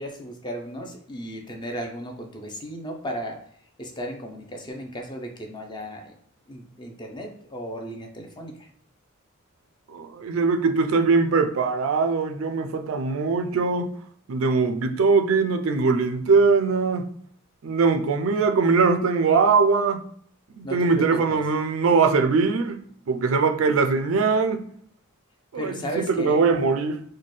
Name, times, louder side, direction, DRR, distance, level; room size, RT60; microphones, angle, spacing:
voice 1, 0.0-3.4 3.8-6.1 6.5-8.7 20.6-21.4 25.5-26.4, equal, 20° left, 0.5 m, -35 dB
voice 2, 9.9-13.9 14.3-17.1 17.6-20.1 20.6-22.8 23.1-24.7 25.5-27.0, right 4 dB, 70° right, 0.4 m, -21 dB
4.1 x 2.2 x 3.1 m
head